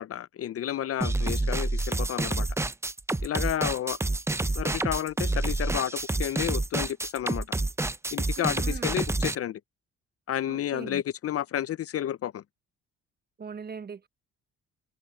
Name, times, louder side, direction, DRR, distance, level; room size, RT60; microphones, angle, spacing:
voice 1, 0.0-2.5 3.2-4.0 4.4-7.5 8.1-9.6 10.3-12.4, left 11 dB, 50° left, 0.5 m, -31 dB
sound 1, 1.0-9.4, right 2 dB, 10° right, 0.6 m, -28 dB
voice 2, 8.4-9.0 10.5-11.0 13.4-14.1, right 5 dB, 30° right, 0.9 m, -40 dB
cardioid pair, 90°, 30 cm